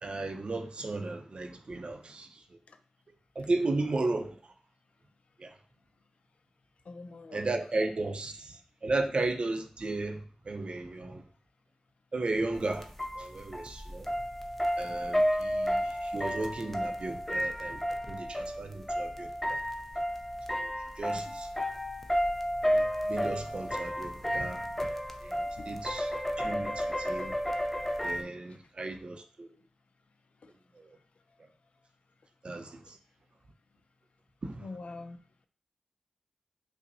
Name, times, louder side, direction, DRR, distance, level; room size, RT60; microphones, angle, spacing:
voice 1, 0.0-2.3 3.4-4.3 5.4-5.5 7.3-8.5 8.8-10.2 10.5-11.2 12.1-12.9 13.2-14.1 14.8-17.8 18.1-19.3 21.0-21.5 22.7-24.6 25.2-25.3 25.7-26.1 26.4-27.3 28.0-29.5 32.4-32.7 34.4-34.5, right 2 dB, 55° right, 0.5 m, -34 dB
voice 2, 6.9-7.4 8.1-8.2 21.1-21.4 25.6-25.7 30.4-30.5 34.6-35.2, left 3 dB, 75° left, 0.4 m, -45 dB
sound 1, 12.5-28.2, equal, 10° left, 0.5 m, -32 dB
5.2 x 2.0 x 2.7 m
wide cardioid pair, 70°, 2 cm